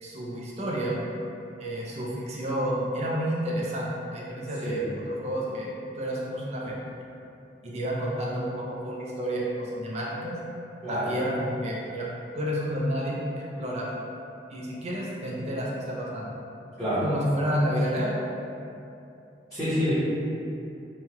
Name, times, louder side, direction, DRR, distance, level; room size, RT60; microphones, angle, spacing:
voice 1, 0.0-1.0 1.6-6.8 7.6-10.4 10.9-12.1 12.3-13.9 14.5-16.3 17.0-18.2, equal, 35° right, -4 dB, 0.4 m, -30 dB
voice 2, 19.5-19.9, equal, ahead, -17 dB, 0.9 m, -28 dB
3.0 x 2.3 x 2.8 m, 2.7 s
head